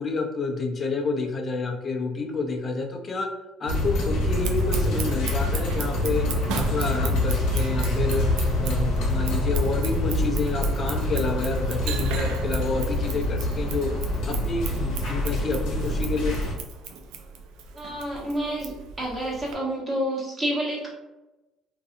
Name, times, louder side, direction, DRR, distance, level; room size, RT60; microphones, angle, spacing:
voice 1, 0.0-3.3 3.6-6.3 6.5-8.3 8.6-13.9 14.2-16.4, left 3 dB, 35° left, 2 dB, 0.5 m, -29 dB
sound 1, 3.7-16.5, left 1 dB, 75° left, 0.9 m, -26 dB
Scissors, 4.3-19.5, right 6 dB, 80° right, 0.3 m, -38 dB
voice 2, 17.7-20.9, equal, 20° right, -5 dB, 1.1 m, -29 dB
2.5 x 2.3 x 2.5 m, 1.0 s
cardioid pair, 100°, 0 cm